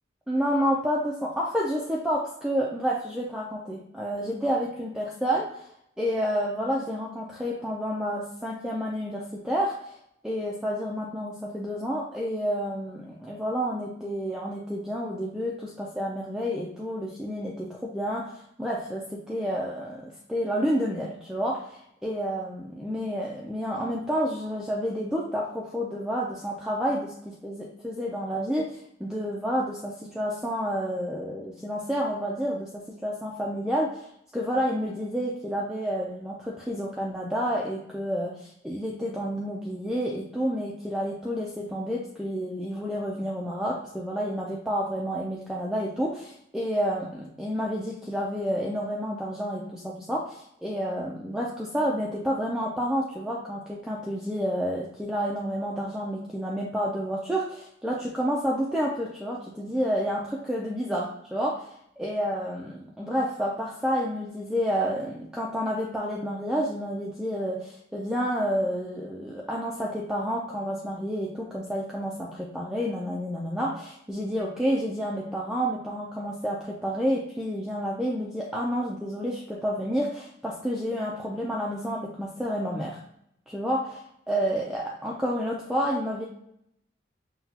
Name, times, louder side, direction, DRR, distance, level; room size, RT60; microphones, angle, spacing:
voice 1, 0.3-5.7 6.0-10.0 10.2-34.1 34.3-83.0 83.5-86.3, equal, 5° right, -4 dB, 0.4 m, -29 dB
5.7 x 2.3 x 2.8 m, 0.73 s
head